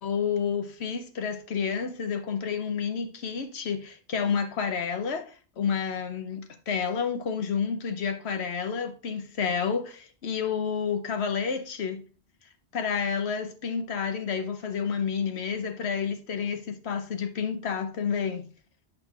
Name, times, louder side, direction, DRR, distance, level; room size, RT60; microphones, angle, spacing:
voice 1, 0.0-12.0 12.7-18.5, left 6 dB, 75° left, 1.0 m, -30 dB
7.4 x 6.3 x 2.4 m
omnidirectional pair, 1.1 m